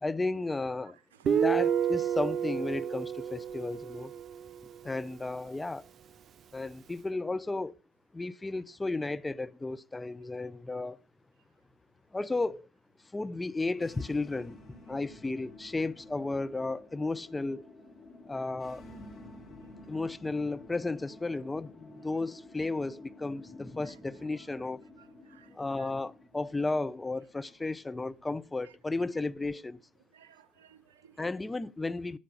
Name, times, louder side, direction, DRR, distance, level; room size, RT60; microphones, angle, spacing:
voice 1, 0.0-1.0 1.3-4.1 4.8-5.9 6.5-7.8 8.1-11.0 12.1-12.7 13.1-14.6 14.9-17.7 18.3-18.8 19.9-24.8 25.5-29.8 31.2-32.2, left 2 dB, 15° left, 0.5 m, -34 dB
voice 2, 1.1-1.4 25.0-25.9 28.6-28.7 30.1-31.2, right 10 dB, 80° right, 0.7 m, -59 dB
Guitar, 1.3-4.8, right 8 dB, 45° right, 0.4 m, -30 dB
sound 1, 13.7-29.8, left 2 dB, 35° left, 3.4 m, -52 dB
10.5 x 7.5 x 5.5 m
hypercardioid pair, 65°, 0 cm